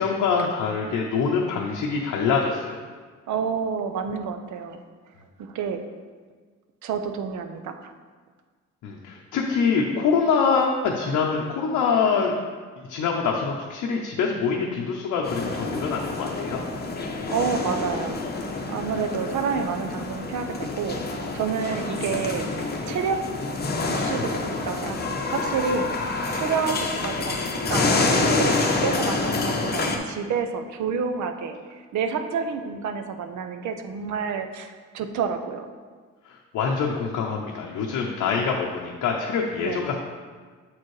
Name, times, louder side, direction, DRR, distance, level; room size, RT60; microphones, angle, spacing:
voice 1, 0.0-2.8 8.8-12.3 12.8-16.6 24.2-24.3 36.3-40.0, left 5 dB, 80° left, -1 dB, 0.7 m, -25 dB
voice 2, 3.3-4.8 5.4-5.8 6.8-7.9 17.3-18.2 18.7-21.0 21.3-23.2 23.9-31.6 31.9-35.7 39.6-39.8, right 6 dB, 70° right, 7 dB, 0.6 m, -29 dB
sound 1, 15.2-30.0, left 3 dB, 35° left, 0.7 m, -27 dB
7.2 x 4.4 x 3.2 m, 1.5 s
cardioid pair, 90°, 30 cm